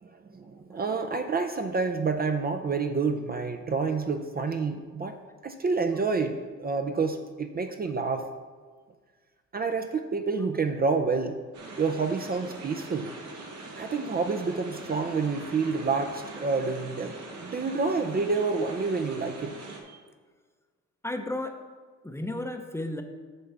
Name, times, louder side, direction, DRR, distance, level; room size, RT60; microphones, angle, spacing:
voice 1, 0.0-5.2 5.4-8.3 9.5-11.4 11.8-13.1 13.8-17.1 17.4-19.6 19.8-20.0, right 4 dB, 30° right, 5 dB, 0.6 m, -28 dB
sound 1, 11.5-19.8, right 2 dB, 75° right, 1.6 m, -42 dB
voice 2, 21.0-21.6 22.0-23.0, left 1 dB, 10° left, 5 dB, 0.7 m, -33 dB
8.0 x 3.8 x 6.7 m, 1.5 s
cardioid pair, 90°, 30 cm